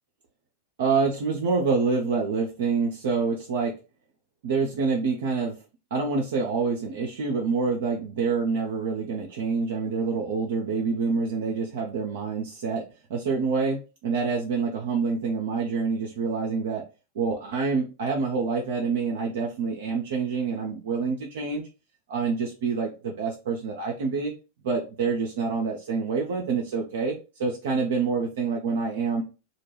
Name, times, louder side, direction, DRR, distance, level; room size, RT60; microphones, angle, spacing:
voice 1, 0.8-3.7 4.4-5.6 5.9-12.8 13.1-16.8 17.2-21.6 22.1-24.3 24.6-29.2, right 4 dB, 60° right, -1 dB, 0.5 m, -27 dB
2.2 x 2.1 x 3.1 m, 0.31 s
figure-of-eight pair, 90°, 0 cm